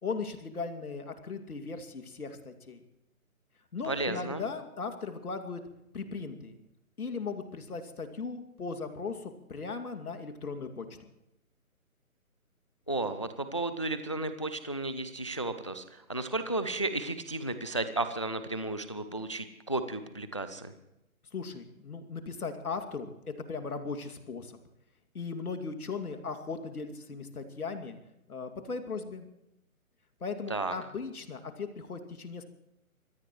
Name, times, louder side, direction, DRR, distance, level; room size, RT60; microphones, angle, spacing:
voice 1, 0.0-2.8 3.7-5.6 5.9-6.6 7.0-11.1 21.3-24.6 25.1-28.0 28.3-29.3 30.2-32.4, left 4 dB, 80° left, 6 dB, 2.6 m, -38 dB
voice 2, 3.8-4.4 12.9-20.7 30.5-30.7, right 2 dB, 20° left, 11 dB, 0.5 m, -33 dB
25.0 x 17.5 x 3.1 m, 0.85 s
hypercardioid pair, 155°, 43 cm